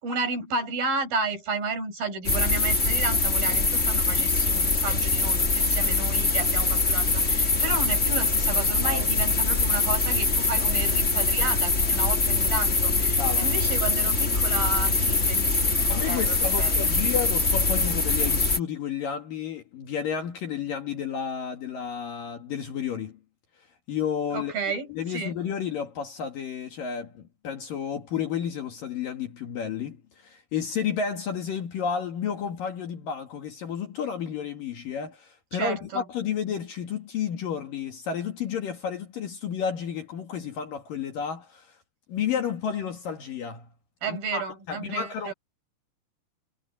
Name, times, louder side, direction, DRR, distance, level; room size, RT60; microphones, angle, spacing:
voice 1, 0.0-16.9 24.3-25.3 35.5-36.0 44.0-45.3, right 4 dB, 50° right, 7.2 m, -32 dB
sound 1, 2.2-18.6, left 3 dB, 30° left, 1.3 m, -23 dB
voice 2, 13.1-13.5 15.9-23.2 23.9-24.5 24.9-41.8 42.1-43.7 44.1-45.3, left 7 dB, 55° left, 3.1 m, -31 dB
omnidirectional pair, 5.2 m